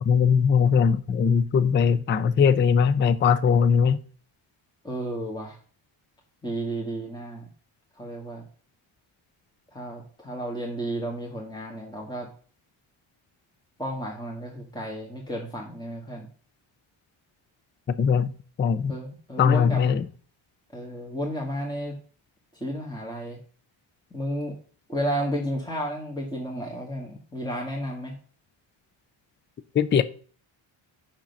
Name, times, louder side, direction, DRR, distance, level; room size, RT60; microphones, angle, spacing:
voice 1, 0.0-4.0 18.0-18.3 18.6-18.9 19.4-20.0 29.7-30.0, left 6 dB, 25° left, 0.4 m, -20 dB
voice 2, 4.8-5.6 6.4-7.5 7.9-8.4 9.7-12.3 13.8-16.3 18.9-19.9 20.7-21.9 22.6-23.4 24.1-24.5 24.9-28.2, equal, 10° left, 1.5 m, -32 dB
7.4 x 5.9 x 5.3 m
cardioid pair, 140°, 49 cm